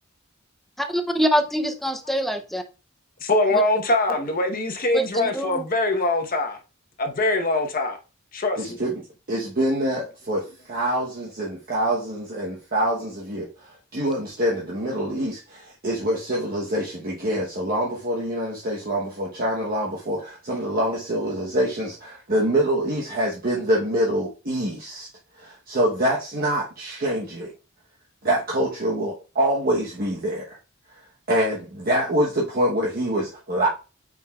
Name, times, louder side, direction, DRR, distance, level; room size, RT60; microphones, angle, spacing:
voice 1, 0.8-2.6 3.5-3.6 4.9-5.6, equal, ahead, 0.6 m, -24 dB
voice 2, 3.2-6.6 7.0-8.0 8.3-8.8, left 2 dB, 45° left, 1.0 m, -23 dB
voice 3, 8.6-9.0 9.3-13.5 13.9-25.1 25.4-27.5 28.2-30.5 31.3-33.7, right 1 dB, 45° right, 1.0 m, -25 dB
8.7 x 4.8 x 2.3 m
head